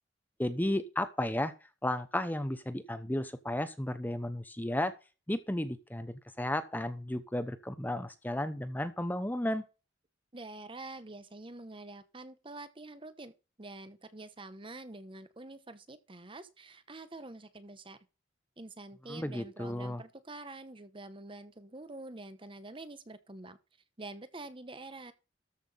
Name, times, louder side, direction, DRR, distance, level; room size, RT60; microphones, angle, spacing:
voice 1, 0.4-1.5 1.8-4.9 5.3-9.6 19.1-20.0, left 1 dB, 10° left, 0.9 m, -33 dB
voice 2, 10.3-13.3 13.6-18.0 18.6-23.6 24.0-25.1, right 2 dB, 25° right, 1.0 m, -46 dB
13.5 x 5.8 x 5.7 m
head